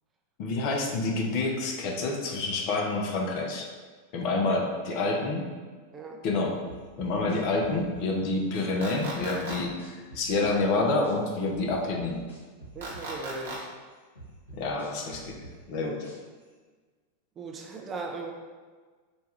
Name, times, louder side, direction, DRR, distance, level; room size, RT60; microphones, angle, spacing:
voice 1, 0.4-3.7 4.1-5.4 6.2-6.6 7.0-12.2 14.5-15.4 15.7-16.1, left 3 dB, 45° left, 1 dB, 0.6 m, -28 dB
voice 2, 4.2-4.6 4.9-5.2 5.9-6.2 12.7-13.6 17.4-18.3, right 3 dB, 25° right, 1 dB, 0.4 m, -39 dB
sound 1, 6.7-8.7 9.2-11.2 11.5-13.7 14.2-16.4, right 2 dB, 80° left, 1.4 m, -47 dB
sound 2, 8.8-9.6 12.8-13.6, right 2 dB, 65° right, 0.9 m, -36 dB
4.2 x 2.3 x 3.2 m, 1.4 s
figure-of-eight pair, 90°, 0 cm